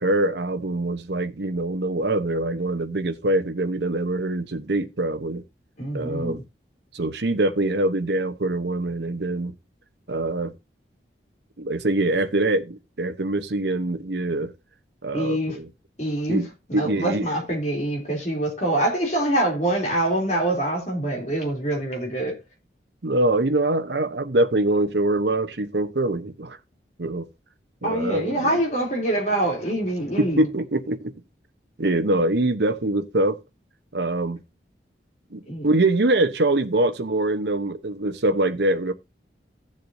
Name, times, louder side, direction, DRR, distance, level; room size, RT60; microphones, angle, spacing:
voice 1, 0.0-5.4 5.9-6.4 6.9-9.5 10.1-10.5 11.6-14.5 15.0-15.7 16.3-16.5 16.7-17.3 23.0-26.6 27.0-27.3 27.8-28.6 30.2-31.1 31.8-33.4 33.9-34.4 35.3-38.9, right 2 dB, 70° right, 0.9 m, -24 dB
voice 2, 5.8-6.4 15.1-15.6 16.0-22.4 27.8-30.5 35.5-35.7, right 1 dB, 40° left, 3.2 m, -25 dB
15.5 x 7.5 x 2.7 m
head